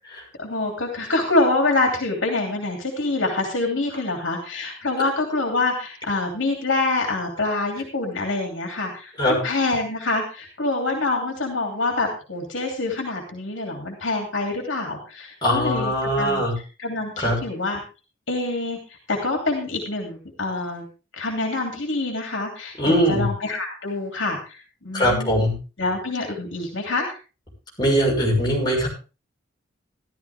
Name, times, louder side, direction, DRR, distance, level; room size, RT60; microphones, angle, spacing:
voice 1, 0.4-17.8 18.3-20.9 21.1-25.4 25.8-27.2, left 2 dB, 70° left, 2 dB, 2.9 m, -26 dB
voice 2, 15.4-16.5 17.2-17.4 22.8-23.3 24.9-25.5 27.8-28.9, equal, 20° left, -3 dB, 6.4 m, -21 dB
14.0 x 13.0 x 3.5 m, 0.33 s
head